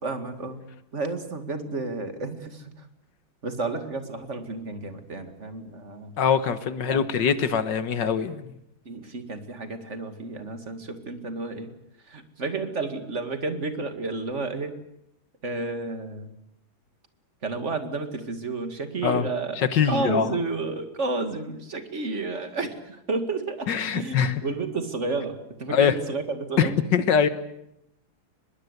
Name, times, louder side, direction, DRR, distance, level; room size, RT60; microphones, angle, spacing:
voice 1, 0.0-0.6 0.9-2.6 3.4-6.1 6.9-7.0 8.9-11.7 12.1-14.7 15.4-16.3 17.4-19.6 19.8-26.7, right 3 dB, 35° right, 2.3 m, -31 dB
voice 2, 6.2-8.5 19.0-19.3 19.6-20.4 23.7-24.4 25.7-26.0 26.6-27.3, left 7 dB, 60° left, 1.9 m, -23 dB
24.0 x 21.0 x 8.1 m
omnidirectional pair, 2.2 m